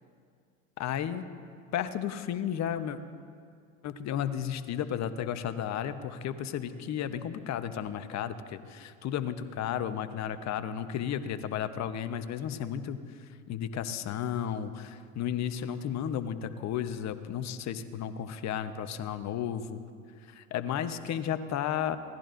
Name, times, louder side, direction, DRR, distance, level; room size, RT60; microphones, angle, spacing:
voice 1, 0.8-1.3 1.7-3.0 3.8-13.0 13.5-19.8 20.3-22.0, left 9 dB, 45° left, 10 dB, 1.0 m, -33 dB
23.5 x 17.5 x 2.6 m, 2.2 s
hypercardioid pair, 80°, 39 cm